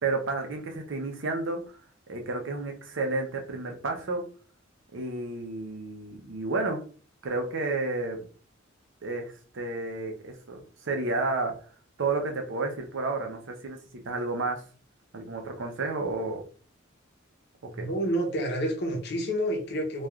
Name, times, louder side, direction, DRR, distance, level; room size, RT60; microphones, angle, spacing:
voice 1, 0.0-1.6 2.1-4.2 4.9-6.8 7.2-8.2 9.0-11.5 12.0-14.6 15.1-16.4 17.6-17.9, right 3 dB, 65° right, 4 dB, 0.6 m, -31 dB
voice 2, 17.7-20.1, equal, 55° left, 2 dB, 0.8 m, -29 dB
3.0 x 2.3 x 2.4 m, 0.41 s
head